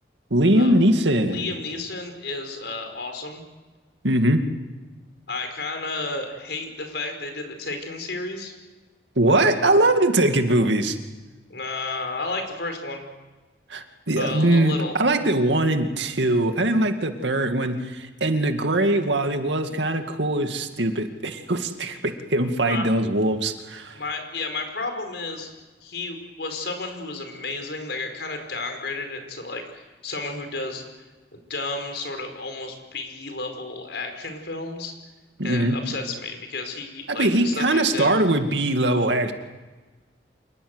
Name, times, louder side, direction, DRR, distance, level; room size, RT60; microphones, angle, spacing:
voice 1, 0.3-1.5 4.0-4.4 9.2-11.0 13.7-24.0 35.4-35.8 37.1-39.3, right 1 dB, 90° right, 6 dB, 2.3 m, -21 dB
voice 2, 1.2-3.4 5.3-8.5 11.5-13.1 14.2-14.9 22.7-22.9 23.9-25.5 25.8-30.8 31.3-34.9 35.4-38.2, left 3 dB, 75° left, 6 dB, 5.0 m, -32 dB
27.0 x 20.0 x 8.1 m, 1.2 s
head